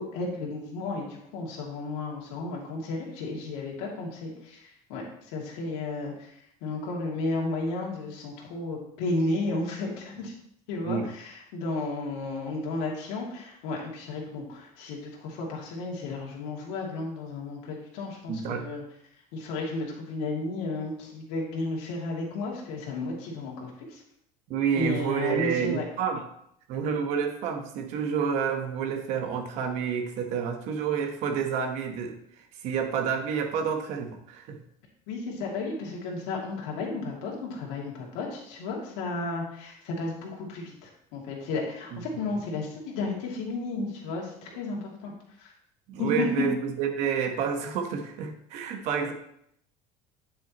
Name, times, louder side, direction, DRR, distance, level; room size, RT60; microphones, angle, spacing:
voice 1, 0.0-10.3 10.7-18.8 19.3-24.0 24.7-25.8 35.1-45.1 45.4-45.5 46.0-46.4, left 2 dB, 75° left, -2 dB, 2.6 m, -33 dB
voice 2, 18.3-18.6 24.5-26.2 26.7-34.6 41.9-42.0 45.9-49.1, right 7 dB, 50° right, 5 dB, 1.1 m, -29 dB
9.0 x 7.4 x 3.0 m, 0.72 s
cardioid pair, 175°, 15 cm